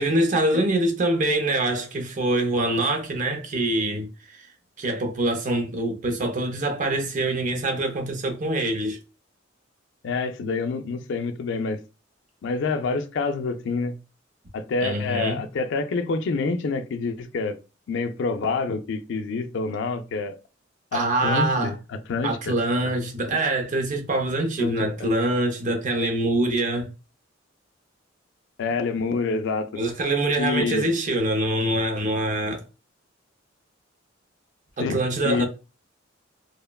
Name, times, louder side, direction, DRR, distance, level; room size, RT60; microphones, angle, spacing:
voice 1, 0.0-4.5 4.8-9.0 14.8-15.4 20.9-21.7 22.2-26.9 29.8-32.6 34.8-35.4, right 1 dB, 40° right, 0.5 m, -24 dB
voice 2, 10.0-11.8 12.4-14.0 14.5-17.5 17.9-20.4 20.9-22.6 22.8-22.9 24.6-25.1 28.6-29.8 30.4-30.9 34.8-35.4, left 4 dB, 60° left, 0.3 m, -27 dB
2.9 x 2.1 x 2.2 m
head